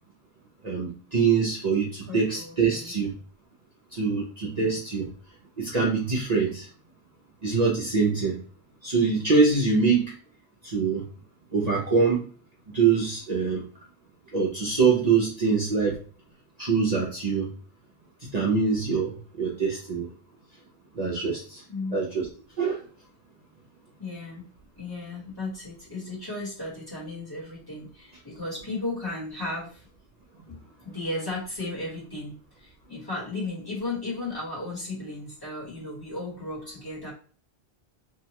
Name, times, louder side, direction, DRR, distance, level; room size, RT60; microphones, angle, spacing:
voice 1, 0.6-3.1 3.9-5.1 5.6-6.7 7.4-8.4 8.8-10.1 10.6-11.0 11.5-12.3 12.7-13.6 14.3-16.0 16.6-17.5 18.2-20.1 21.0-21.6 21.9-22.3 22.6-22.8, right 5 dB, 45° right, -4 dB, 0.7 m, -24 dB
voice 2, 2.1-2.9 4.6-4.8 21.7-22.0 24.0-24.4 24.8-29.9 30.5-37.1, left 2 dB, 20° left, -7 dB, 1.2 m, -35 dB
2.8 x 2.2 x 2.9 m, 0.40 s
omnidirectional pair, 1.1 m